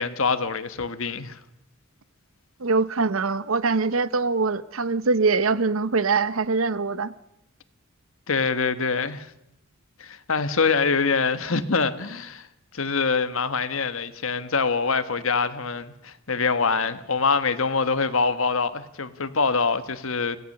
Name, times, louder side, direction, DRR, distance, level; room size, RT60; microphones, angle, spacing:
voice 1, 0.0-1.4 8.3-9.3 10.0-12.5 12.7-20.4, left 4 dB, 75° left, 1.4 m, -24 dB
voice 2, 2.6-7.1, right 4 dB, 80° right, 0.8 m, -23 dB
25.5 x 17.0 x 6.7 m
head